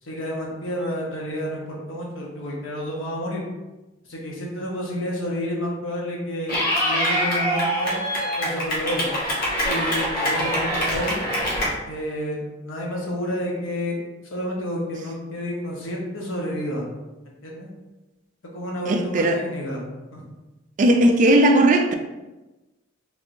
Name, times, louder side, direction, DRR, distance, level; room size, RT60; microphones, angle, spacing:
voice 1, 0.0-3.4 4.0-6.5 6.8-8.0 8.4-9.1 9.6-11.2 11.9-12.4 12.6-14.0 14.2-16.9 17.4-17.7 18.5-20.2, equal, 80° left, -2 dB, 0.9 m, -30 dB
Clapping / Cheering, 6.5-11.7, equal, 50° left, 1.0 m, -24 dB
voice 2, 18.9-19.4 20.8-21.9, right 1 dB, 40° right, 5 dB, 0.3 m, -17 dB
3.3 x 3.1 x 2.5 m, 1.1 s
head